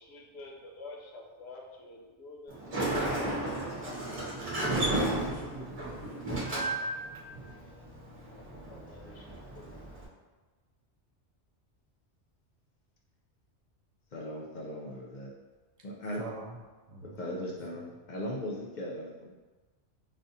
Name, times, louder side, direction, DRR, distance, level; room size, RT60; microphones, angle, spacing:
voice 1, 0.0-3.7 8.7-9.3 9.5-9.6 9.9-10.3, left 2 dB, 70° left, -1 dB, 0.9 m, -49 dB
Sliding door, 2.5-10.1, right 1 dB, 35° right, 0.9 m, -34 dB
voice 2, 4.7-6.8 7.3-7.4 16.2-16.6 16.9-17.3, right 2 dB, 70° right, -1 dB, 1.0 m, -42 dB
voice 3, 14.1-15.3 15.8-16.3 17.0-19.3, left 1 dB, 55° left, -2 dB, 0.6 m, -38 dB
5.1 x 2.4 x 2.7 m, 1.3 s
omnidirectional pair, 1.2 m